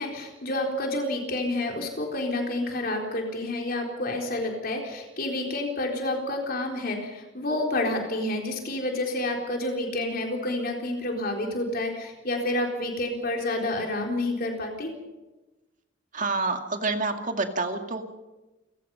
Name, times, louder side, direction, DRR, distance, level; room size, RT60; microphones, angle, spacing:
voice 1, 0.0-14.9, left 1 dB, 50° left, 1 dB, 4.1 m, -29 dB
voice 2, 16.1-18.0, right 3 dB, 45° right, 5 dB, 2.2 m, -28 dB
29.0 x 17.0 x 5.7 m, 1.1 s
head